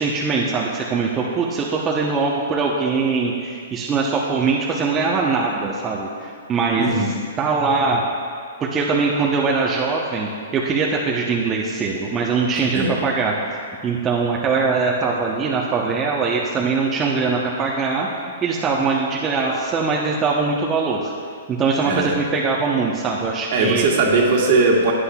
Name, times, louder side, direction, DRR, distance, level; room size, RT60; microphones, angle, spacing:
voice 1, 0.0-7.1 7.4-8.0 8.6-13.3 13.8-18.1 18.4-21.1 21.5-23.8, right 4 dB, 20° right, -3 dB, 0.9 m, -22 dB
voice 2, 6.8-7.1 12.7-12.9 21.8-22.1 23.5-24.9, right 3 dB, 50° right, -1 dB, 2.0 m, -18 dB
16.0 x 9.7 x 2.4 m, 2.2 s
hypercardioid pair, 115°, 0 cm